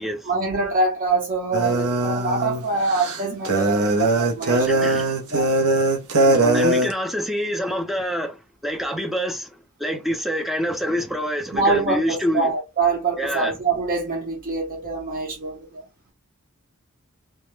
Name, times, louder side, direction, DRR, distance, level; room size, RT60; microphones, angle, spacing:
voice 1, 0.2-4.9 5.3-5.5 6.1-6.7 11.5-15.8, right 3 dB, 40° right, 0.7 m, -25 dB
sound 1, 1.5-6.9, right 2 dB, 80° right, 0.6 m, -21 dB
voice 2, 4.7-5.1 6.5-8.4 8.6-9.5 9.8-12.5 13.2-13.5, equal, ahead, 0.4 m, -26 dB
2.3 x 2.0 x 3.0 m
head